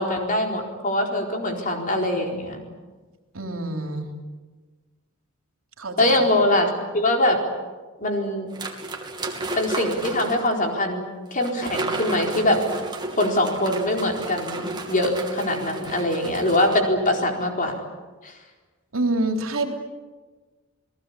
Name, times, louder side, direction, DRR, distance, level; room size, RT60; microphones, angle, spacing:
voice 1, 0.0-2.6 6.0-7.4 8.0-8.5 9.6-12.6 13.2-17.7 18.2-18.3, left 1 dB, 40° left, 2 dB, 4.3 m, -23 dB
voice 2, 3.3-4.2 5.8-6.2 18.9-19.7, right 2 dB, 75° right, 4 dB, 3.4 m, -26 dB
sound 1, 8.5-10.5 11.4-16.8, right 2 dB, 20° right, 2.8 m, -32 dB
30.0 x 19.5 x 8.5 m, 1.3 s
head